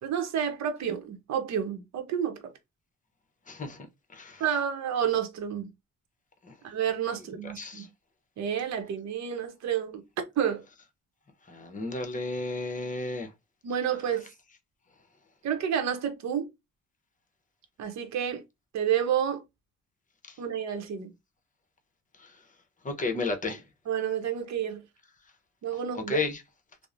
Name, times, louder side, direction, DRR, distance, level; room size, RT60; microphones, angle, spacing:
voice 1, 0.0-2.5 4.4-5.7 6.6-7.9 8.4-10.0 10.4-10.6 13.6-14.3 15.4-16.5 17.8-18.4 18.7-19.4 20.4-21.1 23.9-24.8 25.6-26.2, right 8 dB, 65° right, 0.7 m, -30 dB
voice 2, 3.5-3.8 4.1-4.4 7.6-7.9 11.5-13.3 22.8-23.6 25.9-26.4, left 3 dB, 25° left, 0.7 m, -32 dB
2.9 x 2.0 x 2.4 m
cardioid pair, 90°, 30 cm